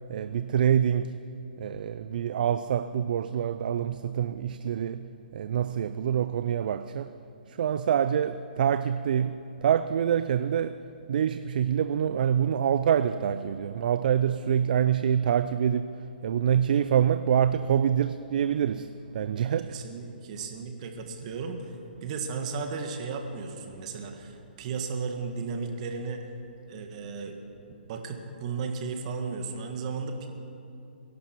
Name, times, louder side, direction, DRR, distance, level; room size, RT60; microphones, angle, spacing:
voice 1, 0.1-1.2 1.6-5.1 5.3-7.1 7.5-10.8 11.1-15.9 16.2-19.8, right 9 dB, 55° right, 0.4 m, -26 dB
voice 2, 19.6-21.7 22.0-26.3 26.7-27.4 27.9-30.3, right 5 dB, 40° right, 1.8 m, -35 dB
22.0 x 11.5 x 4.6 m
hypercardioid pair, 140°, 5 cm